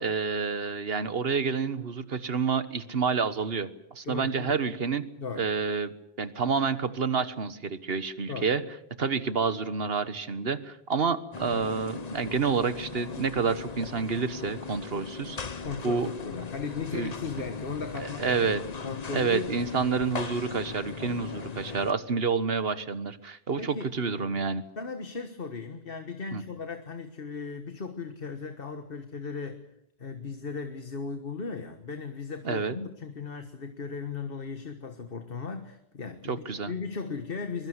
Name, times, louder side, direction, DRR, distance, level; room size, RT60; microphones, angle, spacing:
voice 1, 0.0-5.0 5.4-5.9 6.2-8.6 9.0-16.1 16.9-17.1 18.0-18.6 19.1-24.6 26.3-26.4 32.4-32.7 36.3-36.7, right 5 dB, 70° right, 13 dB, 1.5 m, -29 dB
voice 2, 4.0-4.5 5.2-5.5 8.3-8.5 15.6-19.5 21.3-21.5 23.6-23.9 24.8-29.7 30.0-37.7, left 5 dB, 60° left, 8 dB, 1.7 m, -37 dB
sound 1, 11.3-21.9, left 5 dB, 40° left, 1.1 m, -39 dB
23.0 x 22.0 x 8.1 m, 0.75 s
omnidirectional pair, 1.1 m